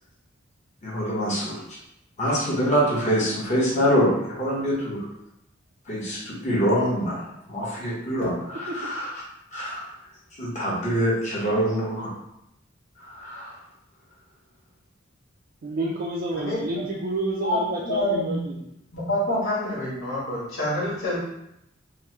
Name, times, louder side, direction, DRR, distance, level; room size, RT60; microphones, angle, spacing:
voice 1, 0.8-1.6 2.2-5.0 5.9-9.1 9.5-9.9 10.4-12.1 13.1-13.5, equal, 35° left, -7 dB, 1.0 m, -25 dB
voice 2, 15.6-18.6, right 2 dB, 50° right, -4 dB, 0.4 m, -30 dB
voice 3, 17.9-18.3 18.9-21.2, left 1 dB, 85° left, -8 dB, 1.3 m, -26 dB
3.1 x 2.1 x 3.1 m, 0.83 s
head